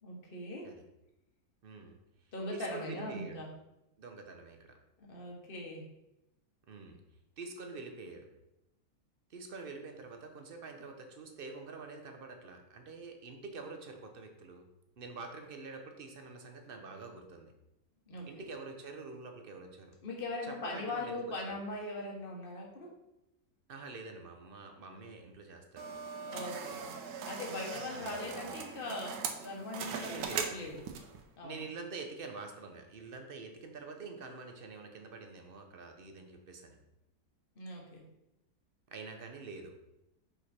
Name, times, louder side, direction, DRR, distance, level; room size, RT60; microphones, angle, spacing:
voice 1, 0.0-0.7 2.3-3.5 5.0-5.8 18.1-18.3 20.0-22.9 26.3-30.8 31.4-31.6 37.5-38.0, left 2 dB, 40° left, -1 dB, 1.3 m, -40 dB
voice 2, 1.6-2.0 2.5-3.4 4.0-4.7 6.7-7.0 7.4-8.3 9.3-14.6 15.0-17.5 18.2-19.9 20.4-21.2 23.7-25.9 27.9-28.6 29.9-30.6 31.4-36.8 38.9-39.7, right 4 dB, 50° right, 4 dB, 0.8 m, -46 dB
sound 1, 25.8-31.2, right 6 dB, 85° right, 1.2 m, -40 dB
5.1 x 4.8 x 4.2 m, 0.90 s
omnidirectional pair, 1.6 m